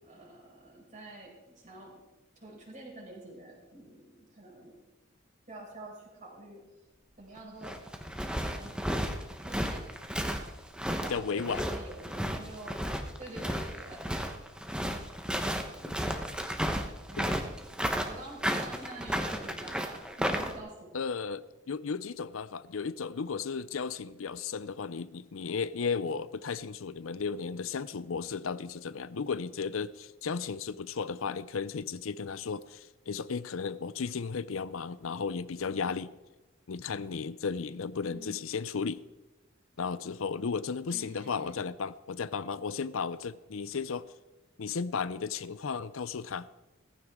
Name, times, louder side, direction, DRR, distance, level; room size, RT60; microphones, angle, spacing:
voice 1, 0.0-2.0 2.4-4.8 5.5-6.6 7.2-7.8 8.2-8.8 9.4-9.9 10.9-12.9 13.2-14.1 17.1-17.6 18.0-20.9 38.1-38.4 40.9-41.6, right 1 dB, 40° right, 5.1 m, -47 dB
sound 1, 7.4-20.6, equal, 5° right, 1.0 m, -33 dB
voice 2, 11.1-11.6 15.9-16.0 17.2-17.3 20.9-36.1 36.7-39.0 39.8-44.0 44.6-46.5, left 5 dB, 85° left, 0.6 m, -34 dB
17.5 x 15.0 x 3.7 m
head